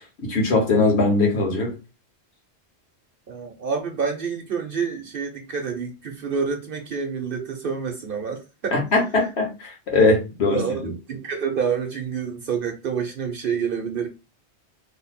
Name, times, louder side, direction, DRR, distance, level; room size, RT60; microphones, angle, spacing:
voice 1, 0.2-1.7 8.7-10.9, left 3 dB, 75° left, 1.5 m, -21 dB
voice 2, 3.3-8.8 10.5-10.8 11.1-14.1, right 6 dB, 60° right, 0.8 m, -28 dB
3.2 x 2.2 x 4.1 m
omnidirectional pair, 1.1 m